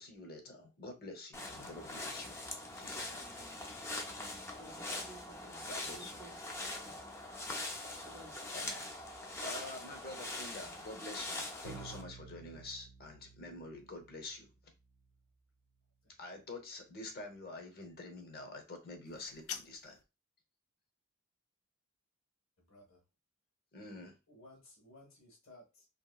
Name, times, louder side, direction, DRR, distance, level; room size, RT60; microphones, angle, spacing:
voice 1, 0.0-2.4 2.7-3.3 5.7-6.1 7.5-7.6 8.5-9.0 9.4-14.5 16.2-20.0 23.7-24.1, left 2 dB, 50° left, 4 dB, 0.7 m, -47 dB
sound 1, 1.3-12.0, left 2 dB, 15° left, 0.4 m, -43 dB
voice 2, 4.1-5.6 5.9-6.4 6.8-7.0 8.1-8.5, right 2 dB, 35° right, 2 dB, 0.5 m, -56 dB
Bowed string instrument, 11.6-14.5, right 6 dB, 85° right, 0.5 m, -53 dB
voice 3, 16.0-16.4 22.6-23.0 23.8-24.0 24.3-25.9, left 1 dB, 70° left, 1 dB, 1.2 m, -59 dB
sound 2, 19.0-20.1, left 9 dB, 85° left, 0.4 m, -45 dB
2.8 x 2.6 x 2.3 m, 0.27 s
head